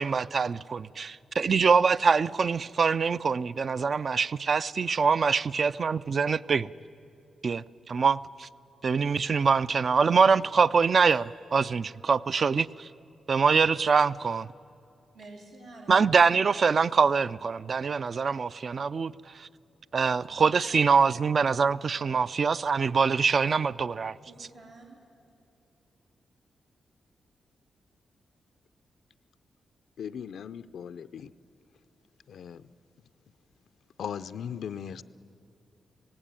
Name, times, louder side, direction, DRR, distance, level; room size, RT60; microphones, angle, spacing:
voice 1, 0.0-6.7 7.4-8.5 8.8-12.9 13.3-14.4 15.9-19.5 19.9-24.2, right 5 dB, 45° right, 0.4 m, -24 dB
voice 2, 11.1-12.1 15.1-16.0 20.2-21.7 24.2-25.0, right 2 dB, 90° right, 3.4 m, -52 dB
voice 3, 30.0-31.3 32.3-32.6 34.0-35.0, left 8 dB, 80° left, 0.4 m, -38 dB
17.5 x 17.5 x 8.9 m
wide cardioid pair, 115°, 0 cm